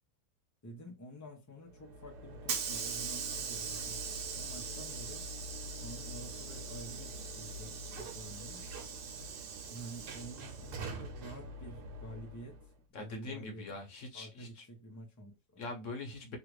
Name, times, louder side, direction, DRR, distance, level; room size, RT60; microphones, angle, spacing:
voice 1, 0.6-5.3 5.8-8.7 9.7-12.7 13.0-13.8 14.1-15.7, right 1 dB, 20° left, 0.5 m, -49 dB
Hiss / Sliding door, 1.8-12.6, right 4 dB, 85° right, 1.3 m, -41 dB
voice 2, 12.9-14.6 15.6-16.4, left 2 dB, 55° left, 1.2 m, -43 dB
3.2 x 2.5 x 3.1 m
omnidirectional pair, 1.7 m